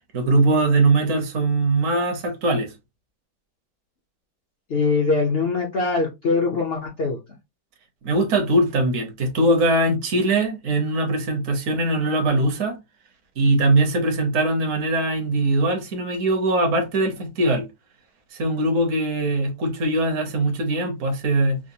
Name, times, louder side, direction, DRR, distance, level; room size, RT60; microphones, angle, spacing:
voice 1, 0.1-2.7 8.0-12.8 13.4-17.6 18.3-21.6, right 2 dB, 55° right, 1.2 m, -21 dB
voice 2, 4.7-7.2, left 4 dB, 55° left, 0.7 m, -22 dB
4.9 x 2.0 x 2.7 m
omnidirectional pair, 1.8 m